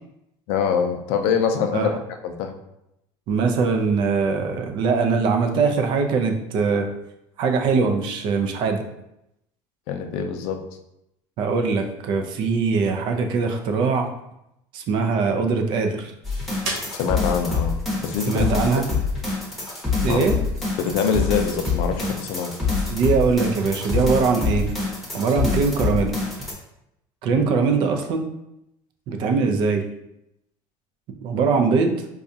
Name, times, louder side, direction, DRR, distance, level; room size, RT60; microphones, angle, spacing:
voice 1, 0.5-1.9 2.2-2.5 9.9-10.6 16.9-18.5 20.0-20.3 20.8-22.5 27.3-27.5, left 6 dB, 70° left, 6 dB, 0.5 m, -24 dB
voice 2, 3.3-6.9 7.4-8.8 11.4-14.1 14.7-16.1 18.3-18.8 20.0-20.4 22.9-24.7 25.1-26.2 27.2-28.3 29.1-29.9 31.2-32.0, right 4 dB, 50° right, 5 dB, 0.5 m, -21 dB
sound 1, 15.9-19.5 20.1-26.4, right 2 dB, 90° right, 1.0 m, -41 dB
sound 2, 16.2-26.5, left 4 dB, ahead, 0.9 m, -25 dB
4.7 x 2.3 x 2.7 m, 0.83 s
cardioid pair, 155°, 11 cm